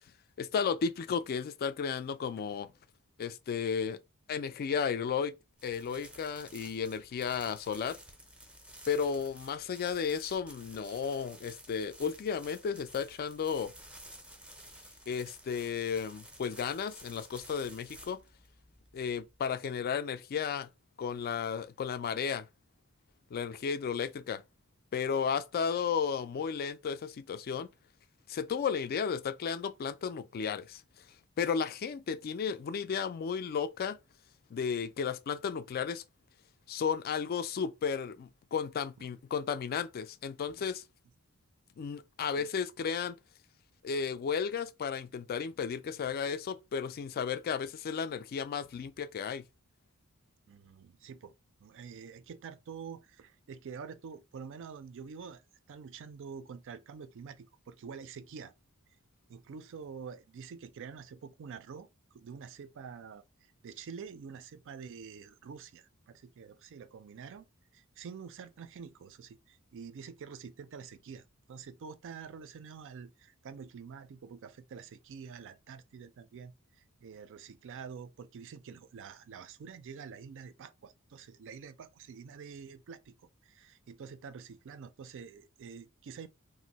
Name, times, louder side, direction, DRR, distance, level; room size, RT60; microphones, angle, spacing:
voice 1, 0.4-2.7 3.2-4.0 4.3-5.3 5.6-8.0 8.9-13.7 15.1-18.2 18.9-20.7 21.0-22.5 23.3-24.4 24.9-27.7 28.3-30.8 31.4-34.0 34.5-36.0 36.7-40.8 41.8-43.1 43.8-49.4, left 6 dB, 45° left, 0.3 m, -33 dB
sound 1, 5.6-19.5, right 1 dB, 5° right, 0.5 m, -53 dB
voice 2, 50.5-51.3 51.6-58.5 59.3-67.5 67.7-83.2 83.4-86.3, right 6 dB, 60° right, 0.4 m, -47 dB
2.6 x 2.0 x 3.9 m
head